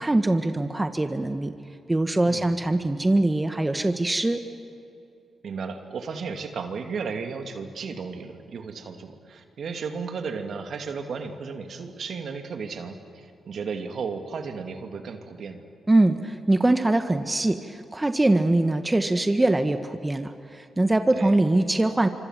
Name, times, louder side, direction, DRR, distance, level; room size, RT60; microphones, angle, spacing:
voice 1, 0.0-1.5 1.9-4.4 15.9-22.1, right 2 dB, 20° right, 8 dB, 1.6 m, -22 dB
voice 2, 5.4-15.6 21.1-21.3, right 5 dB, 65° right, 5 dB, 2.5 m, -34 dB
26.0 x 25.5 x 7.6 m, 2.5 s
supercardioid pair, 45°, 0 cm